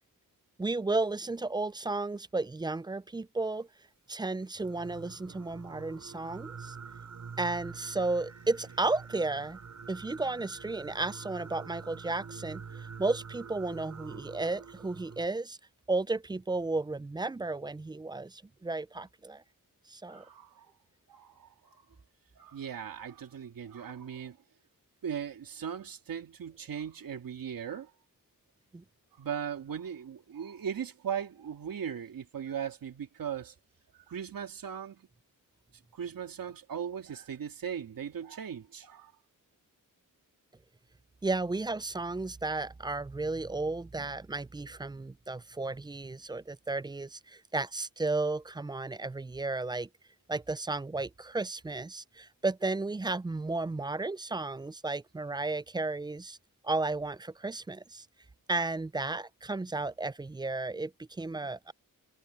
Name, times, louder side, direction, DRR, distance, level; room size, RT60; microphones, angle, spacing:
voice 1, 0.6-3.7 4.1-6.8 7.4-9.6 9.9-15.6 15.9-19.4 19.9-20.2 28.7-28.8 41.2-49.9 50.3-56.4 56.6-58.1 58.5-61.7, right 3 dB, 15° right, 0.3 m, -33 dB
Singing, 4.5-15.3, right 5 dB, 55° right, 6.2 m, -46 dB
voice 2, 20.1-20.7 21.1-21.8 22.4-24.4 25.0-27.9 29.2-33.5 34.1-35.1 35.9-39.1, right 8 dB, 85° right, 2.6 m, -38 dB
wide cardioid pair, 115°, 33 cm